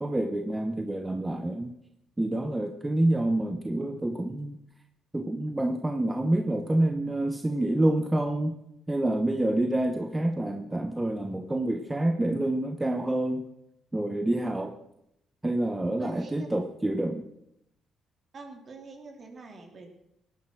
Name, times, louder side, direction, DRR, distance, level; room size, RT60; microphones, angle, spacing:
voice 1, 0.0-1.7 2.2-4.6 5.1-8.5 8.9-13.4 13.9-14.8 15.4-17.3, right 1 dB, 15° right, 5 dB, 1.1 m, -27 dB
voice 2, 16.0-16.5 18.3-19.9, right 4 dB, 45° right, 3 dB, 3.3 m, -44 dB
17.5 x 9.9 x 6.3 m, 0.79 s
cardioid pair, 90°, 0 cm